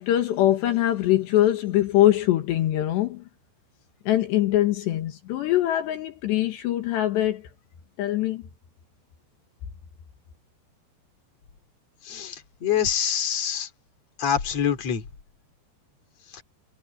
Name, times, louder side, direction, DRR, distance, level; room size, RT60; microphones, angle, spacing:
voice 1, 0.0-3.2 4.1-7.4 8.0-8.4, left 13 dB, 75° left, 3.7 m, -23 dB
voice 2, 12.1-13.7 14.2-15.0 16.3-16.4, left 8 dB, 40° left, 3.8 m, -25 dB
omnidirectional pair, 5.1 m